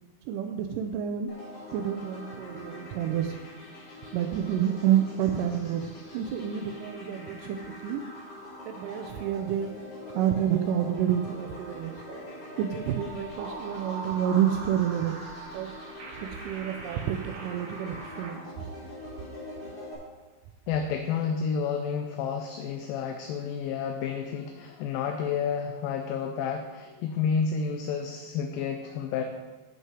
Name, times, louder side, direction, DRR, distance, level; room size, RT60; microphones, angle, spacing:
voice 1, 0.3-1.3 1.7-3.4 4.1-5.9 6.1-7.6 7.8-8.0 8.7-9.7 10.1-11.9 12.6-15.2 15.5-15.7 16.2-18.5, right 10 dB, 85° right, 5 dB, 1.9 m, -28 dB
sound 1, 1.3-19.9, left 1 dB, 40° left, 2.6 m, -44 dB
sound 2, 11.3-18.3, right 2 dB, 60° right, 2.8 m, -42 dB
voice 2, 20.7-29.2, left 6 dB, 80° left, 4 dB, 2.2 m, -30 dB
9.7 x 5.4 x 4.8 m, 1.2 s
omnidirectional pair, 4.3 m